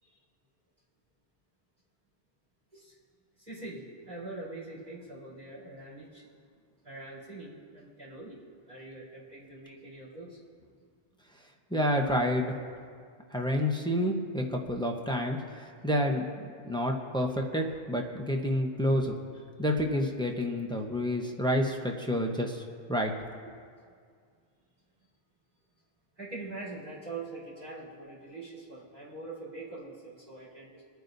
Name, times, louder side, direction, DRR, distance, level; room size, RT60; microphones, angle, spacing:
voice 1, 3.4-6.3 6.8-8.4 8.7-10.4 26.2-30.8, right 2 dB, 40° right, -8 dB, 3.9 m, -43 dB
voice 2, 11.7-12.5 13.3-16.2 16.6-19.2 19.6-22.6 22.9-23.1, equal, 5° left, 1 dB, 0.9 m, -29 dB
27.5 x 9.3 x 2.7 m, 2.1 s
omnidirectional pair, 1.1 m